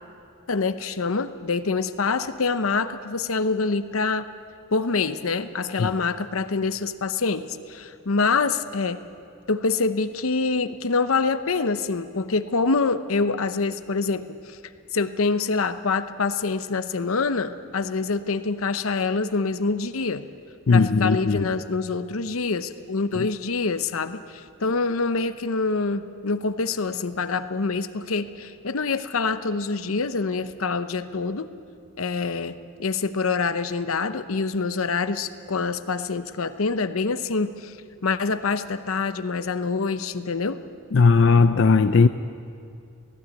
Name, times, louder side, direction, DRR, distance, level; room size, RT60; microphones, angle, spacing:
voice 1, 0.5-4.3 4.7-9.0 9.5-14.6 14.9-20.2 20.7-31.5 32.0-37.8 38.0-40.6, left 4 dB, 85° left, 11 dB, 0.8 m, -26 dB
voice 2, 20.7-21.5 23.2-23.3 40.9-42.1, left 4 dB, 60° left, 9 dB, 0.4 m, -17 dB
17.5 x 15.5 x 9.7 m, 2.5 s
head